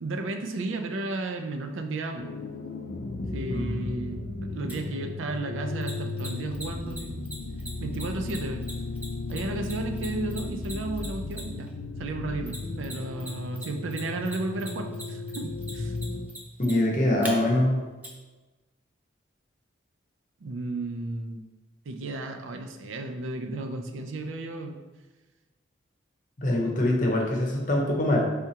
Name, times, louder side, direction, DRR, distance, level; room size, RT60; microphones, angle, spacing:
voice 1, 0.0-2.3 3.3-7.2 7.8-8.7 9.3-11.7 12.0-15.9 20.4-21.5 21.9-24.8, right 2 dB, 80° right, 5 dB, 0.5 m, -33 dB
sound 1, 2.2-16.3, left 3 dB, 60° left, 0.4 m, -35 dB
voice 2, 3.5-3.8 16.6-17.8 26.4-28.2, left 1 dB, 40° left, -1 dB, 0.8 m, -24 dB
Mechanisms, 4.7-4.8 5.8-11.7 12.5-13.3 13.5-17.3 18.0-18.1, right 1 dB, 10° right, 0.5 m, -40 dB
4.6 x 3.5 x 2.8 m, 1.2 s
head